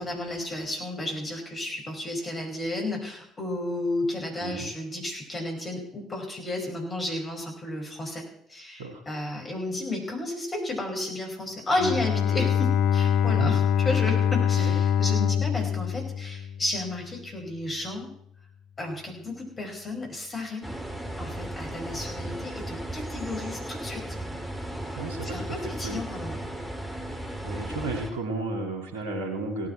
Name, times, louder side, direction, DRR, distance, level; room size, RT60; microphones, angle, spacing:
voice 1, 0.0-8.2 8.5-13.6 13.8-18.1 18.8-20.7 21.2-24.0 25.2-26.4, left 1 dB, 30° left, 1 dB, 5.2 m, -32 dB
Bowed string instrument, 11.7-17.0, left 8 dB, 60° left, 0.5 m, -24 dB
sound 1, 20.6-28.1, right 1 dB, 5° right, 2.5 m, -35 dB
voice 2, 25.0-26.0 27.4-29.7, right 3 dB, 70° right, 3 dB, 2.2 m, -33 dB
17.5 x 10.0 x 4.5 m, 0.71 s
figure-of-eight pair, 55°, 0 cm